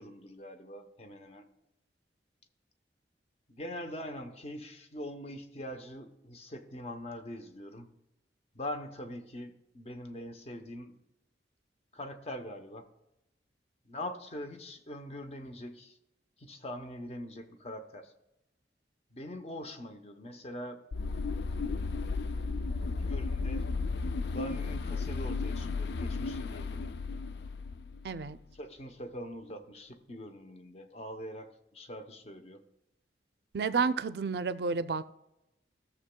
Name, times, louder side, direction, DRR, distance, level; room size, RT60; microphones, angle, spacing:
voice 1, 0.0-1.5 3.5-7.9 8.5-11.0 11.9-12.9 13.9-16.0 16.4-18.1 19.1-20.8 23.0-23.7 24.3-26.9 28.6-32.6, left 1 dB, 35° left, 7 dB, 0.8 m, -43 dB
sound 1, 20.9-28.3, left 4 dB, 70° left, 0.4 m, -34 dB
voice 2, 28.0-28.4 33.5-35.0, right 5 dB, 65° right, 13 dB, 0.4 m, -30 dB
14.5 x 6.9 x 2.2 m, 0.89 s
head